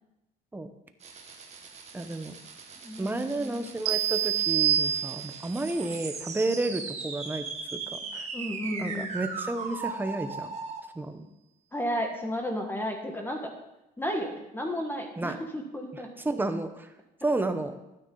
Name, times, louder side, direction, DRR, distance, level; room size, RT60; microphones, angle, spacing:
sound 1, 1.0-10.8, right 5 dB, 40° right, 1.8 m, -39 dB
voice 1, 1.9-2.3 3.0-7.5 7.7-8.3 8.8-10.5 10.9-11.3 15.2-15.4 16.2-16.9 17.2-17.7, right 2 dB, 10° right, 8 dB, 1.0 m, -31 dB
voice 2, 2.8-3.6 8.3-9.2 11.7-13.5 14.0-16.1, equal, 10° left, 3 dB, 1.5 m, -33 dB
sound 2, 3.9-5.6, right 10 dB, 75° right, 0.9 m, -26 dB
12.5 x 9.5 x 4.0 m, 0.93 s
cardioid pair, 110°, 17 cm